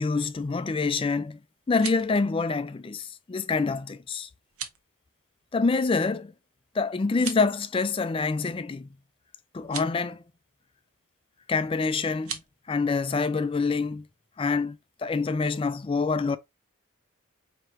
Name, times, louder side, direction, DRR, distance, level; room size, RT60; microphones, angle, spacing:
voice 1, 0.0-1.4 1.7-4.3 5.5-6.3 6.7-9.0 9.5-10.2 11.5-12.4 12.7-14.1 14.4-16.4, left 4 dB, 25° left, 0.3 m, -26 dB
sound 1, 1.6-2.2 4.4-4.8 7.1-7.6 9.6-9.9 12.2-12.5, right 7 dB, 80° right, 0.9 m, -38 dB
4.7 x 2.9 x 2.9 m
head